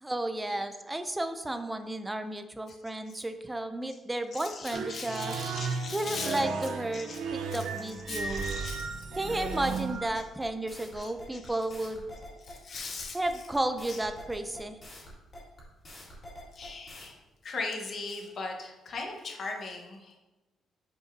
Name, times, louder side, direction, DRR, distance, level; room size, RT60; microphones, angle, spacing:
voice 1, 0.0-5.3 5.9-8.4 9.2-12.1 13.1-14.8, right 1 dB, 10° right, 8 dB, 0.4 m, -33 dB
voice 2, 4.3-6.4 6.9-7.2 7.5-9.1 10.9-11.6 12.4-13.2 13.9-14.0 16.5-17.2 17.4-20.2, left 3 dB, 45° left, 1 dB, 1.2 m, -39 dB
sound 1, 4.7-10.1, right 4 dB, 85° right, 0.6 m, -34 dB
sound 2, 9.1-17.1, left 1 dB, 30° left, 2.2 m, -47 dB
8.0 x 4.9 x 2.7 m, 1.1 s
cardioid pair, 145°, 0 cm